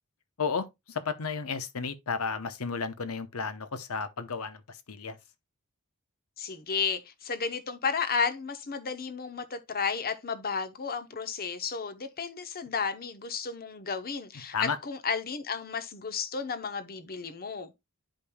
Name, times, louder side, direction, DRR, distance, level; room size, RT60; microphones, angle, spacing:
voice 1, 0.4-5.2 14.5-14.8, left 5 dB, 70° left, 0.8 m, -33 dB
voice 2, 6.4-17.7, left 5 dB, 45° left, 0.9 m, -33 dB
11.5 x 5.2 x 2.2 m
head